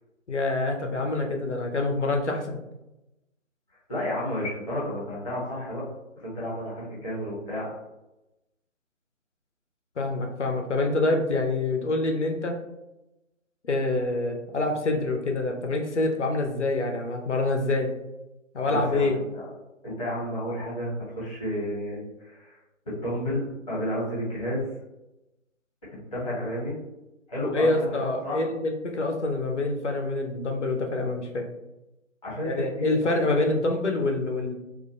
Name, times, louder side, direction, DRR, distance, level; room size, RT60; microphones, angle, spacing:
voice 1, 0.3-2.6 10.0-12.5 13.6-17.9 18.5-19.2 27.4-31.5 32.4-34.5, left 2 dB, 60° left, 2 dB, 0.5 m, -26 dB
voice 2, 3.9-5.8 6.2-7.7 18.7-19.5 19.8-22.6 22.8-24.7 26.0-26.8 27.3-28.4 32.2-33.1, equal, 25° left, -8 dB, 0.9 m, -31 dB
2.4 x 2.1 x 2.5 m, 0.96 s
figure-of-eight pair, 150°, 40 cm